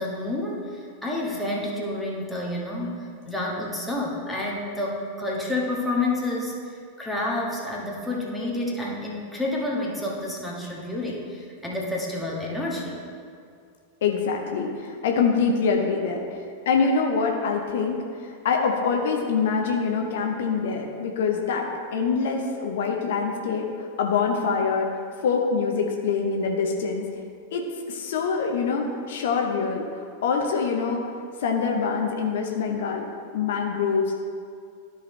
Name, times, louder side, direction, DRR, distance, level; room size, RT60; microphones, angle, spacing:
voice 1, 0.0-13.0, left 2 dB, ahead, -4 dB, 1.5 m, -29 dB
voice 2, 14.0-24.9 25.2-27.0 27.5-31.0 31.4-33.1 33.3-34.2, left 5 dB, 55° left, 2 dB, 0.8 m, -25 dB
13.0 x 5.0 x 3.3 m, 2.2 s
figure-of-eight pair, 90°, 0 cm